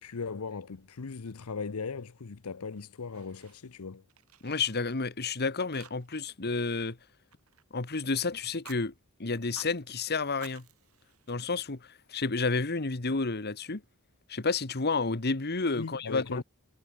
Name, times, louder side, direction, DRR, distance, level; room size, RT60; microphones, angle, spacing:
voice 1, 0.0-4.0 15.8-16.4, left 5 dB, 85° left, 0.7 m, -38 dB
Fire, 2.7-3.8 4.1-5.3 5.7-6.3 6.6-8.0 8.4-8.8 9.4-9.8 10.3-11.8, right 7 dB, 80° right, 5.6 m, -54 dB
voice 2, 4.4-7.0 7.7-8.9 9.2-10.6 11.3-13.8 14.3-16.4, left 4 dB, 50° left, 1.4 m, -30 dB
head